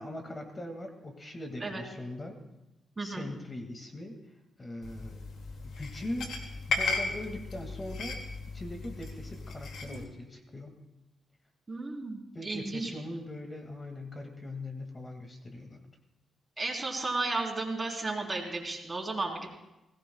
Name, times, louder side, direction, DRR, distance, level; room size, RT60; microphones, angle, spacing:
voice 1, 0.0-2.3 3.0-4.1 4.6-5.2 5.6-6.3 6.7-8.2 8.5-10.7 12.3-15.9, left 1 dB, 30° left, 3 dB, 2.1 m, -41 dB
voice 2, 3.0-3.3 11.7-12.9 16.6-19.6, right 2 dB, 30° right, 0 dB, 3.8 m, -34 dB
sound 1, 4.8-10.0, left 3 dB, 75° left, 2.2 m, -36 dB
20.5 x 17.5 x 2.3 m, 0.97 s
supercardioid pair, 60°, 0 cm